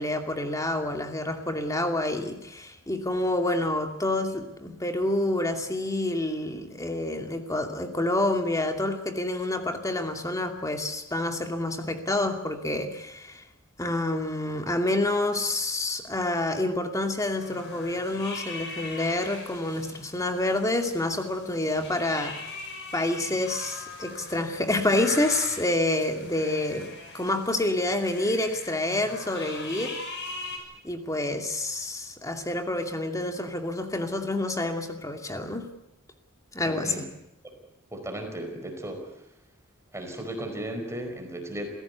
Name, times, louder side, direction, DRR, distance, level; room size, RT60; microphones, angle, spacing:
voice 1, 0.0-13.4 13.8-22.4 22.9-30.0 30.8-35.7 36.5-37.0, left 2 dB, 15° left, 5 dB, 2.5 m, -28 dB
sound 1, 17.3-30.6, left 3 dB, 55° left, 6.5 m, -41 dB
voice 2, 36.6-37.1 37.9-39.2 39.9-41.7, right 1 dB, 15° right, 4 dB, 4.9 m, -35 dB
27.5 x 17.0 x 8.3 m, 0.86 s
head